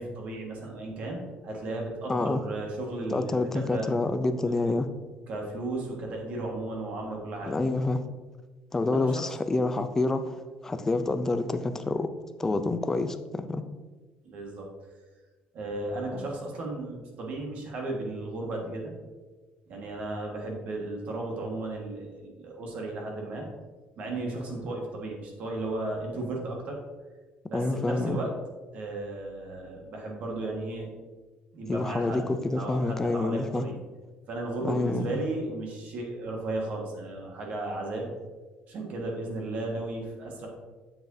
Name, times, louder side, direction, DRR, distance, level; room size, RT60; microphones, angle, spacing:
voice 1, 0.0-3.9 4.4-4.8 5.3-7.5 9.0-9.2 14.2-14.7 15.5-18.9 19.7-23.5 24.0-26.8 27.5-28.3 28.7-30.9 31.5-32.3 32.5-33.8 34.3-38.1 38.7-40.5, right 2 dB, 50° right, 0 dB, 1.5 m, -35 dB
voice 2, 2.1-2.4 3.1-4.9 7.5-8.1 8.7-12.1 12.4-13.6 27.5-28.2 31.7-33.7 34.6-35.1, left 2 dB, 15° left, 9 dB, 0.4 m, -27 dB
7.8 x 6.9 x 2.7 m, 1.3 s
cardioid pair, 160°, 3 cm